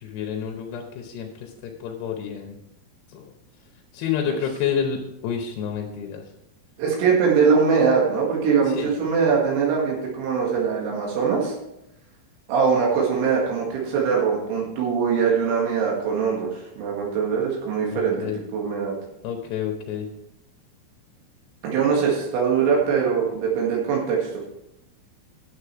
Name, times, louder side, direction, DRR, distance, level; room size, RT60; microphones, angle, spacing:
voice 1, 0.0-1.5 1.8-2.6 3.1-3.2 3.9-6.2 8.8-8.9 17.9-18.4 19.2-20.1, left 8 dB, 75° left, 2 dB, 2.7 m, -29 dB
voice 2, 6.8-11.5 12.5-18.2 18.5-18.9 21.6-24.5, right 6 dB, 85° right, -3 dB, 4.5 m, -22 dB
10.0 x 8.4 x 4.8 m, 0.85 s
omnidirectional pair, 5.8 m